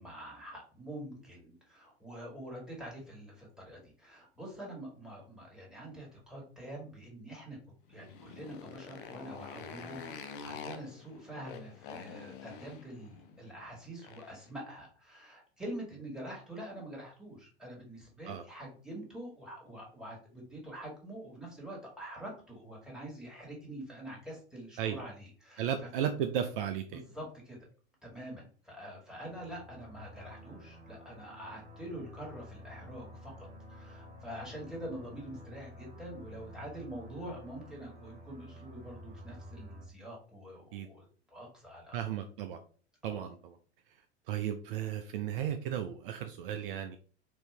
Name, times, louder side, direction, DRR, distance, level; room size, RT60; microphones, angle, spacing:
voice 1, 0.0-7.6 7.9-25.7 26.9-27.6 28.0-42.0 43.0-43.3, right 1 dB, ahead, -2 dB, 1.8 m, -45 dB
Motorcycle, 7.9-14.5, left 6 dB, 50° left, 0.8 m, -47 dB
voice 2, 25.6-27.0 40.7-40.9 41.9-42.6 43.0-43.6 44.3-47.0, right 9 dB, 55° right, 8 dB, 0.5 m, -35 dB
sound 1, 29.1-39.9, left 1 dB, 20° right, 1.3 m, -51 dB
4.4 x 2.7 x 3.3 m, 0.41 s
figure-of-eight pair, 85°, 34 cm